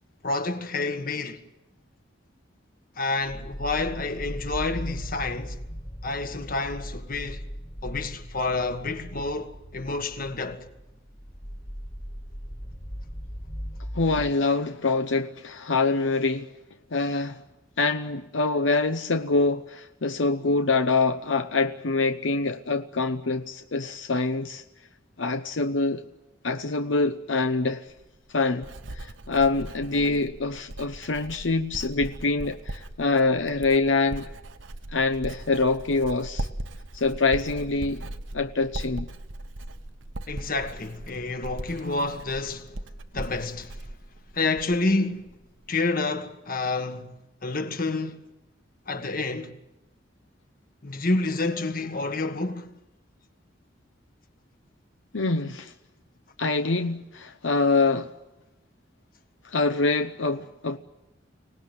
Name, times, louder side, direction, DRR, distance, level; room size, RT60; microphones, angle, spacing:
voice 1, 0.2-1.4 3.0-5.6 6.0-7.4 7.8-10.7 40.3-42.8 43.1-43.8 44.3-45.3 45.7-48.3 48.9-49.5 50.8-52.7, left 3 dB, 50° left, 1.7 m, -29 dB
sound 1, 3.2-14.4, equal, 30° left, 2.5 m, -38 dB
voice 2, 13.9-16.5 16.9-17.4 17.8-24.6 25.2-26.0 26.4-27.8 28.3-34.3 34.9-36.5 36.9-38.0 38.3-39.1 55.1-55.7 56.4-58.1 59.4-60.8, left 3 dB, 80° left, 0.8 m, -25 dB
Writing, 27.9-44.9 45.2-45.7, right 1 dB, 80° right, 1.1 m, -39 dB
25.0 x 18.5 x 9.3 m
head